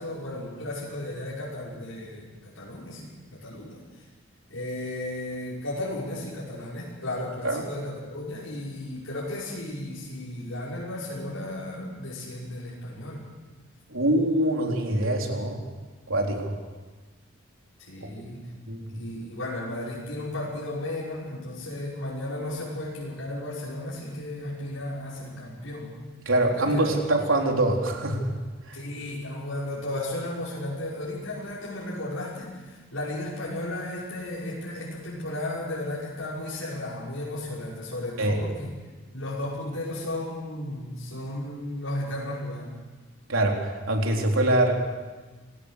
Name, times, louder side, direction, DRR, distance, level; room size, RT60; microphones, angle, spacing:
voice 1, 0.0-3.8 4.5-13.2 17.8-18.5 18.9-26.0 26.5-26.9 28.7-38.7 39.1-42.7, left 1 dB, 80° left, -7 dB, 5.6 m, -34 dB
voice 2, 13.9-15.6 16.1-16.5 18.0-18.1 18.7-18.9 26.3-28.3 28.7-28.8 38.2-38.4 43.3-44.7, right 1 dB, 80° right, 1 dB, 3.8 m, -24 dB
27.5 x 18.5 x 6.6 m, 1.3 s
head